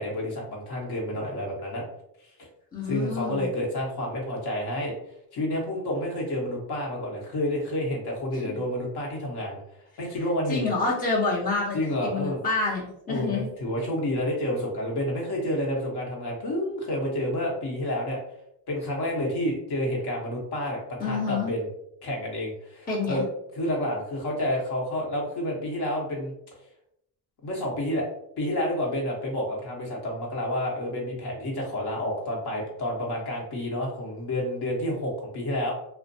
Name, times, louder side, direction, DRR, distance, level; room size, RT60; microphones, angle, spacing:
voice 1, 0.0-1.8 2.4-2.5 2.8-4.9 5.3-9.6 10.0-10.7 11.7-12.4 13.1-18.2 18.7-21.7 22.0-23.3 23.5-26.3 27.4-28.1 28.4-35.7, left 1 dB, 50° left, -2 dB, 1.1 m, -29 dB
voice 2, 2.7-3.5 8.4-8.6 10.5-13.5 21.0-21.5 22.9-23.2, left 3 dB, 20° left, -4 dB, 0.7 m, -28 dB
2.4 x 2.1 x 2.6 m, 0.78 s
supercardioid pair, 80°, 49 cm